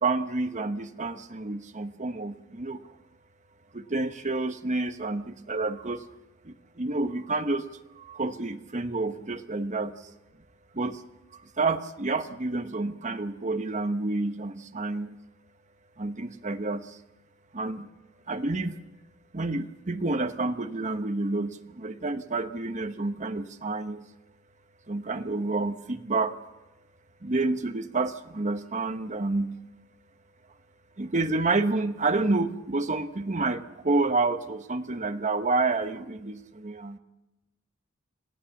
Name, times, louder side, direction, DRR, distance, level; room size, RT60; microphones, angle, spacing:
voice 1, 0.0-2.8 3.7-6.0 6.8-7.6 8.0-9.9 10.7-11.0 11.6-15.1 16.0-16.8 17.5-17.9 18.3-18.8 19.3-24.0 24.9-26.3 27.2-29.5 31.0-37.0, right 3 dB, 35° right, 9 dB, 1.0 m, -29 dB
26.0 x 16.0 x 7.1 m, 1.0 s
head